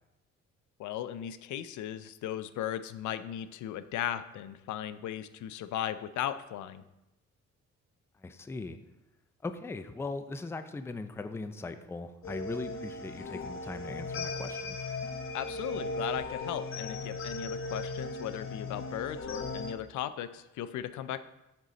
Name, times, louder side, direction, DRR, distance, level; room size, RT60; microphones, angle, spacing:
voice 1, 0.8-6.8 15.3-21.2, left 11 dB, 75° left, 13 dB, 0.5 m, -37 dB
voice 2, 8.2-8.8 9.4-14.8, left 3 dB, 10° left, 9 dB, 0.4 m, -39 dB
sound 1, 12.2-19.7, left 2 dB, 45° left, 1.0 m, -37 dB
7.7 x 4.2 x 4.0 m, 0.94 s
cardioid pair, 90°, 30 cm